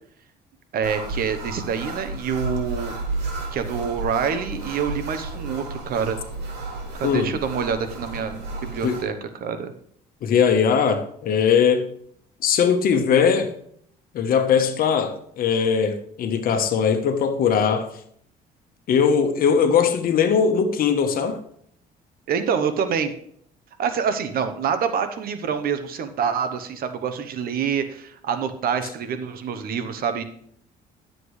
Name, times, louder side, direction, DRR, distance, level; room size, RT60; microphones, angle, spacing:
voice 1, 0.7-2.9 3.5-6.2 6.9-9.1 9.4-9.7 22.3-23.1 23.8-30.2, right 7 dB, 60° right, 1.0 m, -26 dB
sound 1, 0.8-9.0, right 2 dB, 85° right, 2.6 m, -32 dB
voice 2, 10.2-11.9 12.4-13.5 14.1-17.9 18.9-21.4, left 6 dB, 60° left, 1.2 m, -20 dB
11.5 x 7.6 x 3.3 m
cardioid pair, 110°, 17 cm